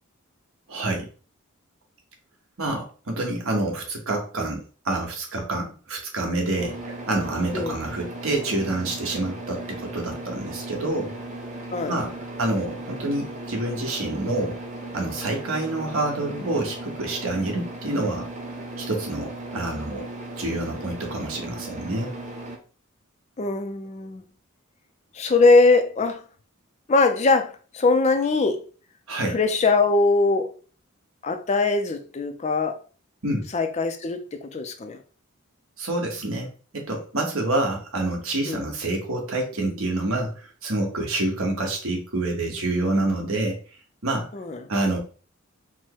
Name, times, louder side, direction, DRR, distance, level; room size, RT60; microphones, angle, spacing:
voice 1, 0.7-1.1 2.6-11.1 11.9-14.6 14.9-18.3 18.8-20.1 20.4-22.1 29.1-29.4 33.2-33.5 35.8-43.6 44.0-44.3 44.7-45.0, right 2 dB, 75° right, 1.3 m, -27 dB
sound 1, 6.6-22.6, right 2 dB, 35° right, 0.8 m, -37 dB
voice 2, 11.7-12.0 23.4-24.2 25.1-26.2 26.9-28.6 29.3-30.5 31.2-32.8 33.5-35.0 38.5-38.7 44.3-44.6, left 3 dB, 30° left, 0.4 m, -21 dB
4.5 x 2.1 x 4.4 m
head